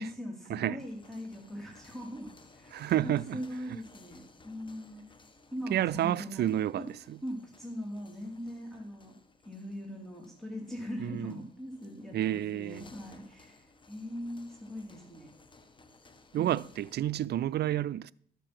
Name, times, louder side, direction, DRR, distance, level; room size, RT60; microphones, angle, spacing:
voice 1, 0.0-5.0 5.5-6.9 7.2-9.1 9.4-15.3 16.4-16.6, equal, ahead, 2.7 m, -41 dB
sound 1, 0.7-17.1, left 3 dB, 25° left, 1.1 m, -59 dB
voice 2, 2.7-3.4 5.7-7.2 11.0-11.3 12.1-12.8 16.3-18.1, right 12 dB, 55° right, 0.4 m, -30 dB
12.0 x 6.9 x 5.9 m
cardioid pair, 90°, 20 cm